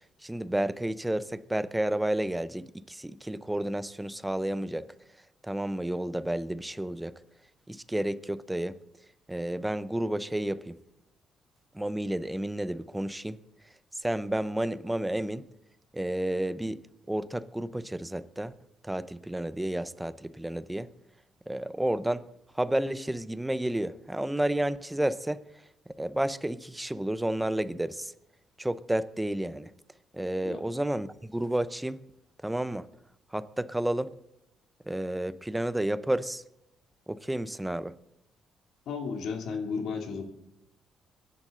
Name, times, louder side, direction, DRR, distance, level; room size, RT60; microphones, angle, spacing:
voice 1, 0.2-4.9 5.4-7.2 7.7-8.8 9.3-10.8 11.7-13.4 13.9-15.5 15.9-16.8 17.1-18.5 18.8-20.9 21.5-22.3 22.5-25.4 25.9-28.1 28.6-29.7 30.1-32.0 32.4-32.9 33.3-34.2 34.9-36.4 37.1-38.0, right 1 dB, 5° right, 0.7 m, -31 dB
voice 2, 38.9-40.2, left 5 dB, 70° left, 2.7 m, -33 dB
23.0 x 11.0 x 3.8 m
cardioid pair, 110°, 0 cm